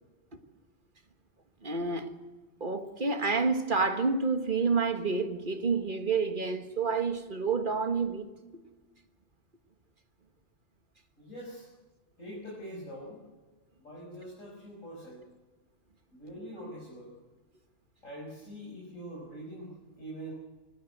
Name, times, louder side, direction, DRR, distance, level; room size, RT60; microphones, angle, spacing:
voice 1, 1.6-2.1 2.6-8.2 8.5-8.6, right 4 dB, 40° right, 7 dB, 1.7 m, -29 dB
voice 2, 11.2-11.7 12.2-13.2 13.8-15.3 16.1-17.2 18.0-20.3, equal, 90° left, -3 dB, 6.3 m, -44 dB
23.0 x 19.0 x 8.0 m, 1.2 s
omnidirectional pair, 1.3 m